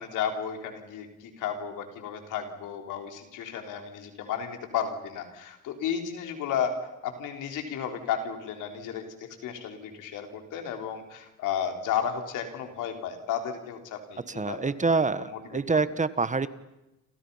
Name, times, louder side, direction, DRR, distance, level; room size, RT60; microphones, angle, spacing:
voice 1, 0.0-14.7 15.2-15.6, left 8 dB, 90° left, 4 dB, 4.1 m, -33 dB
voice 2, 14.3-16.5, right 4 dB, 25° right, 14 dB, 1.3 m, -26 dB
29.5 x 27.0 x 5.7 m, 0.96 s
cardioid pair, 90°, 30 cm